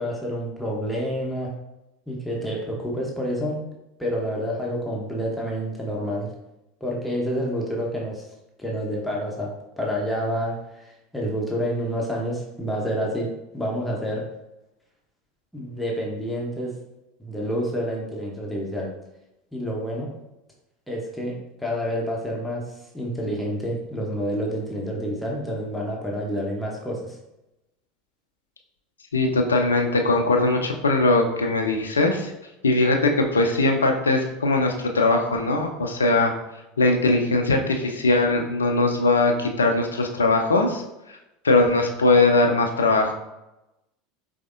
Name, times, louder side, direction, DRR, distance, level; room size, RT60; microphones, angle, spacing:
voice 1, 0.0-1.5 2.1-3.6 4.0-6.3 6.8-8.2 8.6-14.2 15.5-16.7 17.2-18.9 19.5-20.1 20.9-22.6 22.9-27.2, equal, 5° left, -3 dB, 0.9 m, -28 dB
voice 2, 29.1-32.3 32.6-36.3 36.8-40.8 41.4-43.1, left 2 dB, 75° left, 3 dB, 0.5 m, -20 dB
5.0 x 3.4 x 2.5 m, 0.93 s
figure-of-eight pair, 75°, 0 cm